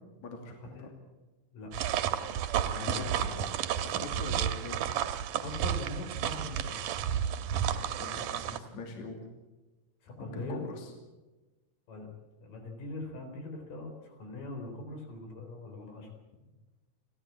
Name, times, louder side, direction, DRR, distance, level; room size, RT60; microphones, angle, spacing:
voice 1, 0.2-0.9 2.8-3.3 3.8-4.9 8.0-9.2 10.2-10.9, left 3 dB, 60° left, 3 dB, 3.9 m, -42 dB
sound 1, 1.7-8.6, right 9 dB, 80° right, 2.6 m, -32 dB
voice 2, 2.6-3.5 4.2-4.4 5.4-6.8 10.0-10.6 11.9-12.1 12.4-16.1, left 2 dB, 90° left, 4 dB, 5.6 m, -41 dB
30.0 x 12.5 x 8.5 m, 1.1 s
omnidirectional pair, 3.7 m